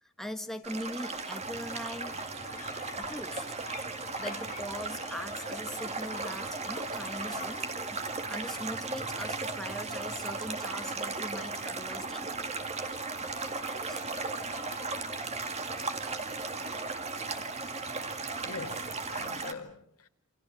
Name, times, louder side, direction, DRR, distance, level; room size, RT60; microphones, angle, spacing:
voice 1, 0.0-2.2 3.0-3.5 4.2-12.4 13.6-14.0, equal, ahead, 1.4 m, -41 dB
sound 1, 0.6-19.5, right 3 dB, 30° right, 2.0 m, -36 dB
sound 2, 1.4-19.3, left 3 dB, 35° left, 3.5 m, -49 dB
voice 2, 18.4-20.1, left 4 dB, 85° left, 2.1 m, -43 dB
29.0 x 26.0 x 6.4 m
head